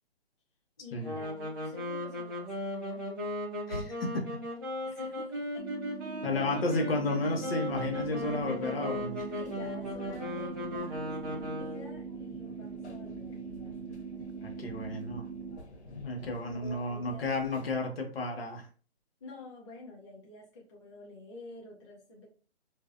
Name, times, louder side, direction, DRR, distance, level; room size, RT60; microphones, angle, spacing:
voice 1, 0.8-3.1 4.8-5.7 6.0-6.7 9.3-14.0 16.4-17.3 19.2-22.3, left 2 dB, 25° left, -4 dB, 0.4 m, -49 dB
sound 1, 1.0-12.0, left 1 dB, 20° right, 0.6 m, -37 dB
voice 2, 3.7-4.3 6.2-9.3 14.4-15.3 15.9-18.7, left 2 dB, 60° left, 2 dB, 0.9 m, -32 dB
sound 2, 5.6-15.6, right 6 dB, 70° right, 0.6 m, -42 dB
sound 3, 7.7-17.8, equal, 90° left, 0.8 m, -51 dB
2.5 x 2.0 x 2.4 m, 0.39 s
hypercardioid pair, 155°, 33 cm